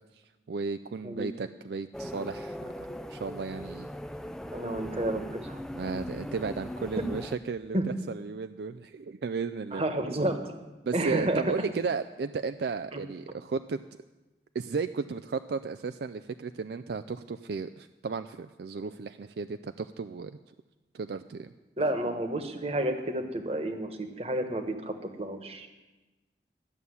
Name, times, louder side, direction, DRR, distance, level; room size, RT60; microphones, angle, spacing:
voice 1, 0.5-3.9 5.7-7.8 8.1-9.8 10.8-13.8 14.5-20.3 20.9-21.5, right 4 dB, 65° right, 10 dB, 0.4 m, -34 dB
sound 1, 1.9-7.4, equal, 5° left, 0.4 m, -39 dB
voice 2, 4.5-5.6 7.7-7.8 9.7-10.5 10.9-11.5 12.9-13.0 21.8-25.7, right 1 dB, 35° right, 6 dB, 1.2 m, -30 dB
13.0 x 7.0 x 9.6 m, 1.1 s
head